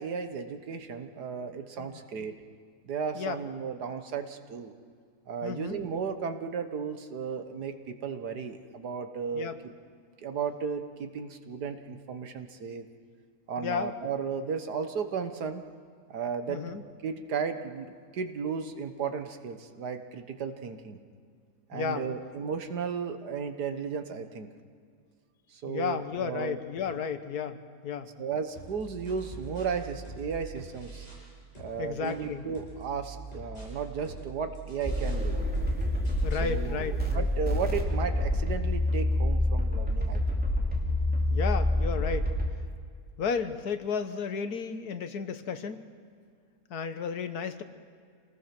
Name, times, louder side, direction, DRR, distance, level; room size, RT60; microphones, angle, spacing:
voice 1, 0.0-2.3 2.8-4.7 5.3-9.5 10.2-12.9 13.5-15.6 16.1-16.6 17.0-21.0 21.7-24.5 25.5-26.6 28.2-31.1 31.6-35.4 36.4-40.4, right 6 dB, 85° right, 7 dB, 1.9 m, -34 dB
voice 2, 5.4-5.8 9.3-9.6 13.6-13.9 16.5-16.8 21.7-22.1 25.7-28.1 31.8-32.5 36.2-37.3 41.3-42.3 43.2-45.8 46.7-47.6, left 6 dB, 75° left, 9 dB, 1.6 m, -33 dB
sound 1, 28.6-31.3 31.6-36.6, right 4 dB, 25° left, 8.0 m, -45 dB
sound 2, 34.8-42.5, left 1 dB, 5° right, 2.9 m, -27 dB
28.0 x 19.5 x 6.1 m, 2.1 s
omnidirectional pair, 1.7 m